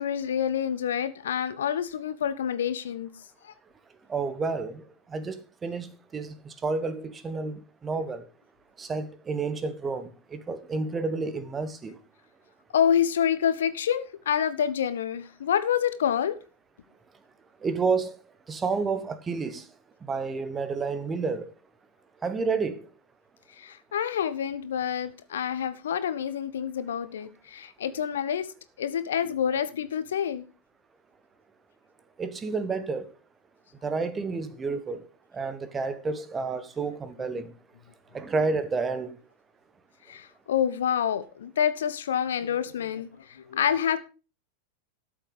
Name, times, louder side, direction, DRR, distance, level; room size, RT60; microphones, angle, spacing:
voice 1, 0.0-3.1 3.4-3.5 12.7-16.4 23.6-28.5 28.8-30.4 40.1-44.0, left 9 dB, 65° left, 1.0 m, -27 dB
voice 2, 4.1-8.3 8.8-12.0 17.6-18.2 18.5-19.6 20.1-21.5 22.2-22.9 32.2-33.1 33.8-35.1 35.3-37.5 38.1-39.2, right 4 dB, 20° right, 1.2 m, -30 dB
13.0 x 7.2 x 5.1 m
figure-of-eight pair, 90°, 0 cm